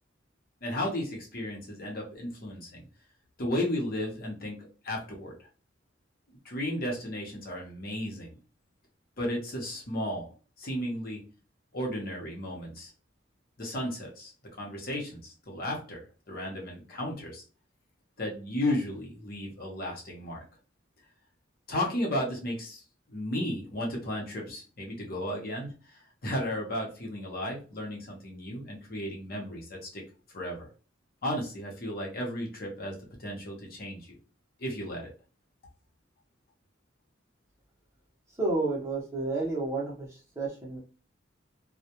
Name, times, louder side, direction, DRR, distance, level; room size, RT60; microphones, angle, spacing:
voice 1, 0.6-2.8 3.4-5.3 6.3-8.3 9.2-10.3 10.6-11.2 11.7-12.9 13.6-14.3 14.6-17.4 18.2-20.4 21.7-22.8 23.1-30.0 30.3-30.7 31.2-32.9 33.2-34.2 34.6-35.1, left 1 dB, 50° left, -1 dB, 0.8 m, -34 dB
voice 2, 38.4-40.8, right 3 dB, 15° right, -3 dB, 0.7 m, -31 dB
2.3 x 2.1 x 2.8 m, 0.36 s
head